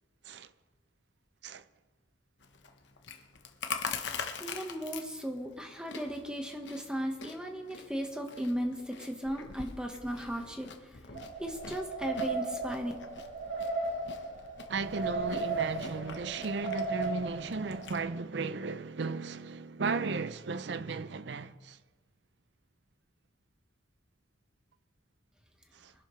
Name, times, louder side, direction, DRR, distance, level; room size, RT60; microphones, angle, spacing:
Chewing mastication, 2.4-18.0, left 5 dB, 75° left, 1.1 m, -44 dB
voice 1, 4.4-10.7 11.4-12.9, equal, 5° right, 1.3 m, -36 dB
sound 1, 11.1-18.1, right 3 dB, 85° right, 3.2 m, -36 dB
voice 2, 14.7-21.8 25.7-25.9, right 4 dB, 65° right, 0.6 m, -35 dB
23.5 x 12.0 x 3.2 m
head